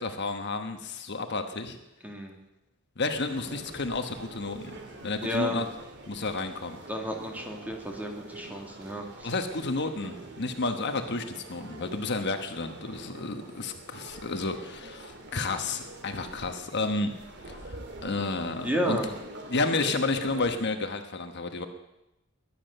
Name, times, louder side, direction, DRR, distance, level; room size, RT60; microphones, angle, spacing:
voice 1, 0.0-1.8 3.0-4.8 5.0-5.7 6.1-6.8 9.2-17.1 17.5-19.0 19.5-21.6, left 3 dB, 55° left, 6 dB, 1.3 m, -31 dB
voice 2, 2.0-2.4 5.2-5.6 6.9-9.3 18.6-19.1 19.8-19.9, equal, 10° right, 1 dB, 2.6 m, -32 dB
sound 1, 3.1-20.5, right 2 dB, 55° right, 2.4 m, -45 dB
21.5 x 10.0 x 6.7 m, 0.93 s
head